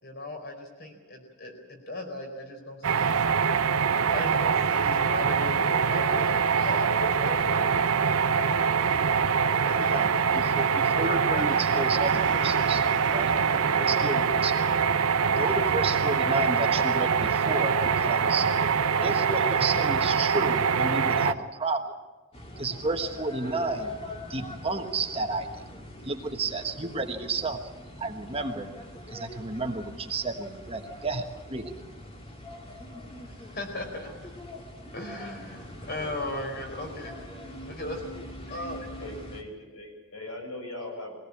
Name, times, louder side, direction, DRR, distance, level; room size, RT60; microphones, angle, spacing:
voice 1, 0.0-3.3 4.1-9.1 9.6-12.2 33.3-34.3 34.9-37.1 37.4-38.9, left 1 dB, 45° left, 4 dB, 4.5 m, -38 dB
sound 1, 2.8-21.3, right 6 dB, 75° right, 0.9 m, -24 dB
voice 2, 9.5-12.8 13.1-13.3 13.8-14.6 15.4-18.5 19.0-21.9 22.6-23.9 24.3-25.5 26.0-27.6 28.0-28.7 29.1-31.7, right 3 dB, 25° right, 5 dB, 1.4 m, -31 dB
Gong, 12.0-19.0, right 6 dB, 55° right, 1.9 m, -41 dB
sound 2, 22.3-39.4, left 1 dB, 25° left, 2.3 m, -43 dB
voice 3, 39.0-41.2, left 1 dB, 80° left, 2 dB, 7.4 m, -39 dB
22.0 x 18.0 x 8.5 m, 1.2 s
head